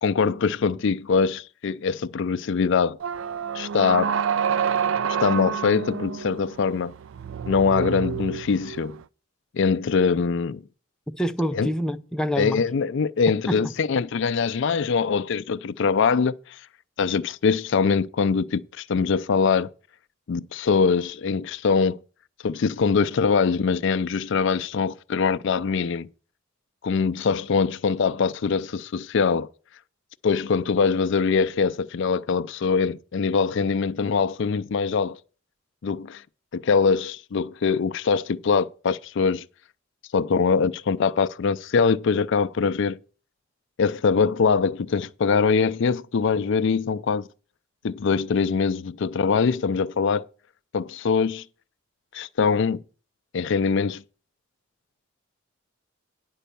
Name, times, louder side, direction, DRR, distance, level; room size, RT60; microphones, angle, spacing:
voice 1, 0.0-3.0 3.5-4.2 5.2-6.9 7.5-9.0 9.5-10.6 11.5-11.7 12.4-16.6 17.0-19.7 20.3-22.0 22.4-26.1 26.8-29.5 30.2-35.2 35.8-36.2 36.5-39.4 40.1-43.0 43.8-47.3 47.8-50.2 50.7-51.4 52.1-52.8 53.3-54.0, left 5 dB, 65° left, 0.4 m, -23 dB
sound 1, 3.0-9.0, right 7 dB, 75° right, 0.4 m, -28 dB
voice 2, 11.2-12.6 13.5-13.7, equal, 5° left, 0.5 m, -26 dB
10.0 x 5.4 x 6.8 m
head